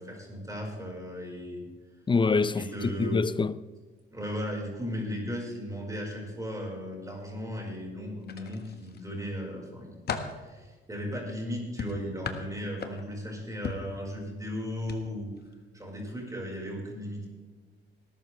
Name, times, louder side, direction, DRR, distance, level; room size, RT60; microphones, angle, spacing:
voice 1, 0.0-1.7 2.5-3.2 4.1-10.0 10.3-15.3 15.7-17.3, equal, 15° right, 4.9 m, -36 dB
voice 2, 2.1-3.5, left 4 dB, 25° left, 0.6 m, -25 dB
sound 1, 8.2-9.0 9.5-10.4 11.8-13.2 13.6-13.9 14.8-15.0 15.4-15.5, left 5 dB, 55° left, 1.5 m, -37 dB
19.5 x 12.5 x 3.4 m
cardioid pair, 90°, 20 cm